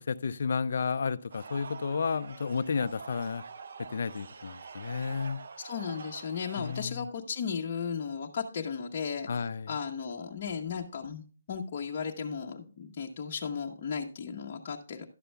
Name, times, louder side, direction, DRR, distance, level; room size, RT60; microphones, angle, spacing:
voice 1, 0.1-3.4 3.8-5.4 6.6-7.1 9.3-9.8, left 5 dB, 60° left, 0.5 m, -32 dB
sound 1, 1.3-6.9, right 5 dB, 60° right, 0.7 m, -46 dB
voice 2, 5.6-15.1, left 6 dB, 40° left, 1.0 m, -35 dB
11.5 x 6.8 x 3.4 m
hypercardioid pair, 160°, 0 cm